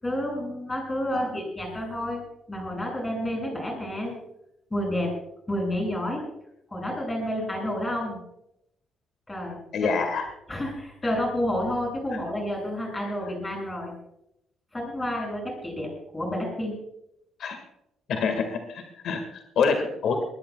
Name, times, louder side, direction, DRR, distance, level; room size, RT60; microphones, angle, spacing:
voice 1, 0.0-4.1 4.7-5.1 5.5-6.2 6.7-8.2 9.3-9.9 10.5-13.9 14.7-16.8, left 1 dB, 15° left, 0 dB, 6.9 m, -30 dB
voice 2, 9.7-10.3 17.4-17.6 18.1-20.2, left 5 dB, 65° left, 5 dB, 1.9 m, -26 dB
21.0 x 20.5 x 2.3 m, 0.80 s
cardioid pair, 145°, 0 cm